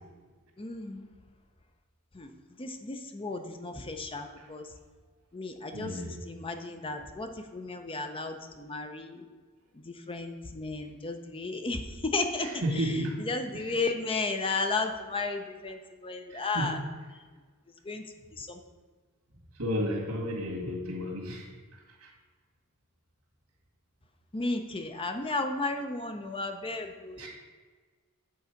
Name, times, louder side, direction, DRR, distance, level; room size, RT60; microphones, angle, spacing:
voice 1, 0.6-1.1 2.1-2.3 2.6-4.7 5.3-9.2 9.7-16.8 17.1-17.3 17.8-18.0 18.3-18.6 24.3-27.3, left 3 dB, 25° left, 6 dB, 0.6 m, -34 dB
voice 2, 5.7-6.1 12.6-13.2 16.3-16.7 19.6-21.5 22.0-22.1 27.2-27.3, equal, 85° right, 0 dB, 1.9 m, -32 dB
8.4 x 3.9 x 5.8 m, 1.4 s
head